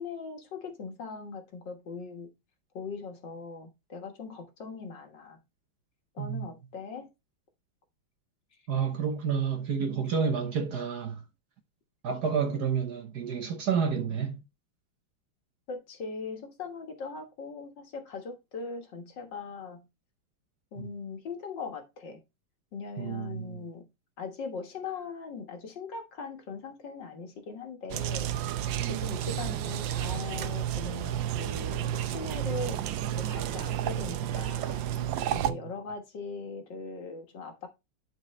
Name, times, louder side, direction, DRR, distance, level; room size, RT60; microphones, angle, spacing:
voice 1, 0.0-2.3 2.7-5.4 6.1-7.1 15.7-19.9 20.7-22.2 22.7-23.9 24.2-28.4 28.8-32.9 33.2-37.7, left 4 dB, 60° left, 2.0 m, -40 dB
voice 2, 8.7-11.2 12.0-14.4 20.8-20.9 23.0-23.6 28.8-29.1 35.5-35.6, right 6 dB, 55° right, 1.4 m, -30 dB
sound 1, 27.9-35.5, right 11 dB, 75° right, 1.2 m, -31 dB
11.0 x 4.6 x 3.2 m
omnidirectional pair, 2.3 m